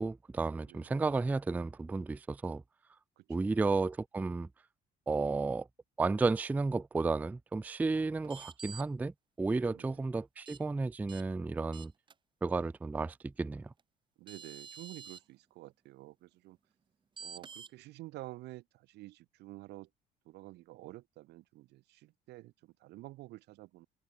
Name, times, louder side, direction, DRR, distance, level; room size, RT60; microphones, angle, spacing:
voice 1, 0.0-2.6 3.3-4.5 5.1-5.7 6.0-9.1 9.4-11.9 12.4-13.7, right 3 dB, 10° right, 0.3 m, -32 dB
voice 2, 0.7-1.0 3.2-3.6 9.7-10.0 14.2-16.6 17.2-19.9 20.2-23.9, right 18 dB, 80° right, 1.3 m, -50 dB
sound 1, 8.2-8.8 10.5-10.6 11.1-11.2 11.7-12.1 13.8-13.9 14.3-15.2 17.2-17.7, right 6 dB, 30° right, 0.9 m, -48 dB
open air
cardioid pair, 110°, 17 cm